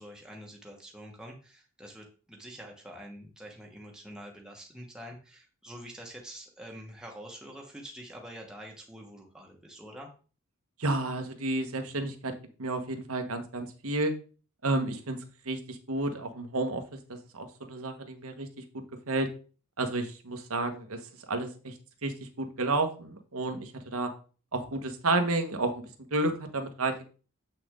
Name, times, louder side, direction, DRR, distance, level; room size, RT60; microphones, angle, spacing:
voice 1, 0.0-10.1, equal, 5° right, -1 dB, 1.3 m, -46 dB
voice 2, 10.8-12.3 12.6-14.1 14.6-15.2 15.4-16.8 17.1-18.5 19.1-19.3 19.8-21.0 21.3-21.7 22.0-24.1 24.5-25.8 26.1-27.0, right 2 dB, 85° right, 6 dB, 1.3 m, -31 dB
7.7 x 6.0 x 3.7 m, 0.37 s
head